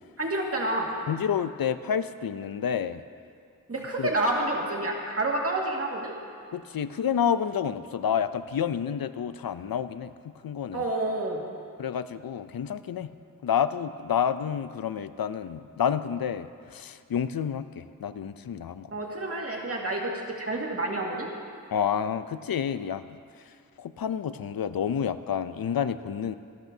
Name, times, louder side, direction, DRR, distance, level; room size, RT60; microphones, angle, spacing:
voice 1, 0.2-0.9 3.7-6.1 10.7-11.4 18.9-21.3, right 2 dB, 40° right, -1 dB, 1.9 m, -29 dB
voice 2, 1.1-3.0 4.0-4.1 6.5-10.1 10.4-10.8 11.8-13.1 13.4-18.9 21.7-23.0 23.8-26.4, left 8 dB, 75° left, 13 dB, 0.5 m, -29 dB
23.5 x 12.0 x 2.7 m, 2.3 s
wide cardioid pair, 95°, 35 cm